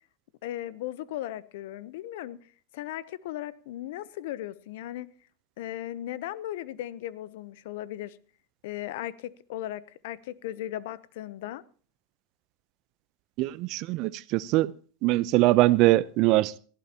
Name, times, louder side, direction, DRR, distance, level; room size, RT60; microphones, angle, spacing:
voice 1, 0.4-2.4 2.7-5.1 5.6-8.2 8.6-11.6, left 13 dB, 70° left, 0.8 m, -37 dB
voice 2, 13.4-14.7 15.0-16.6, right 18 dB, 55° right, 0.7 m, -22 dB
18.5 x 15.0 x 2.9 m
hypercardioid pair, 105°, 0 cm